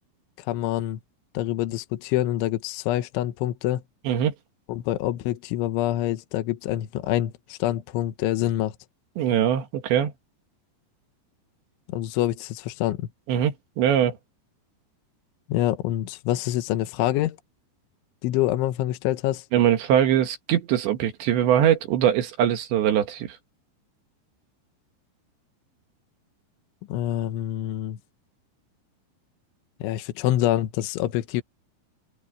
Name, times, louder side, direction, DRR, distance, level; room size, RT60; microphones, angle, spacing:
voice 1, 0.4-1.0 1.4-3.8 4.7-8.7 11.9-13.1 15.5-17.4 18.2-19.5 26.9-28.0 29.8-31.4, left 14 dB, 75° left, 3.4 m, -26 dB
voice 2, 9.2-10.1 13.3-14.2 19.5-23.4, right 10 dB, 70° right, 3.6 m, -22 dB
omnidirectional pair, 5.7 m